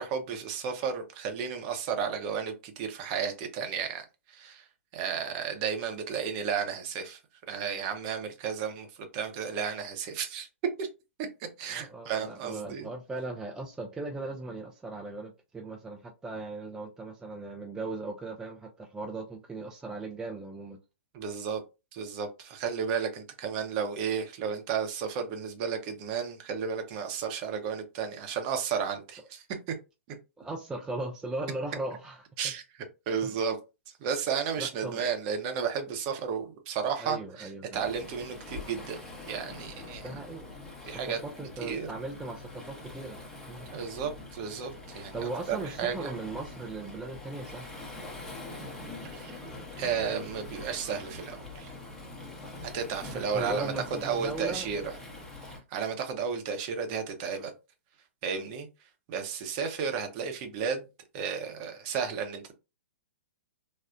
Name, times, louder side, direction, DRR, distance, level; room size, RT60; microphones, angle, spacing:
voice 1, 0.0-4.6 4.9-7.2 7.5-8.9 9.1-10.5 10.8-10.9 11.6-12.9 21.1-21.6 21.9-29.4 32.4-32.6 33.1-33.6 34.0-39.0 39.3-40.1 40.9-41.2 41.6-41.9 43.7-46.1 49.0-49.4 49.8-51.7 52.6-53.7 54.0-54.9 55.7-57.5 58.2-58.7 59.1-60.8 61.1-62.5, right 6 dB, 40° right, 0.7 m, -33 dB
voice 2, 11.7-20.8 30.4-32.2 33.2-33.3 34.6-35.1 37.0-37.8 40.0-40.5 40.8-43.2 43.5-43.7 45.1-47.7 53.1-54.7, right 2 dB, 10° right, 0.4 m, -38 dB
Waves surf, 37.7-55.6, left 2 dB, 5° left, 0.7 m, -44 dB
3.5 x 2.0 x 2.5 m
hypercardioid pair, 120°, 7 cm